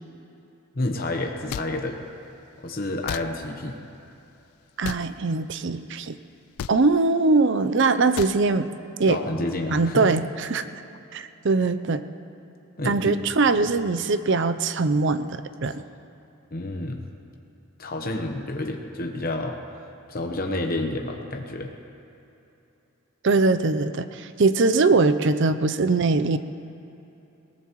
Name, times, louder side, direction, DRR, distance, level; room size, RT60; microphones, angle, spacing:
voice 1, 0.7-2.0 2.6-3.8 9.1-10.1 12.8-13.2 16.5-17.1 17.8-19.5 20.1-21.7, left 2 dB, 45° left, 2 dB, 1.0 m, -29 dB
sound 1, 1.5-1.7 3.1-3.2 4.8-5.0 6.6-6.8 8.2-8.4, left 8 dB, 85° left, 0.4 m, -32 dB
voice 2, 4.8-6.2 6.7-8.7 9.0-9.2 9.7-10.8 11.1-12.0 12.8-15.8 23.2-26.4, right 3 dB, 55° right, 11 dB, 0.5 m, -22 dB
20.5 x 18.5 x 3.1 m, 2.9 s
head